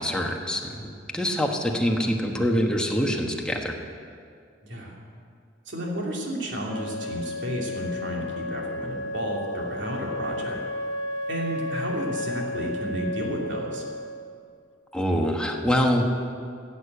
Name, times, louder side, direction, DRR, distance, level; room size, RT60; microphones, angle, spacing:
voice 1, 0.0-3.8 14.9-16.0, equal, 5° left, 1 dB, 1.2 m, -25 dB
voice 2, 4.6-5.0 5.7-10.6 11.3-13.8, right 1 dB, 75° right, -2 dB, 2.8 m, -32 dB
Wind instrument woodwind instrument, 6.6-14.4, left 2 dB, 90° left, 0.7 m, -33 dB
14.5 x 8.4 x 8.0 m, 2.3 s
head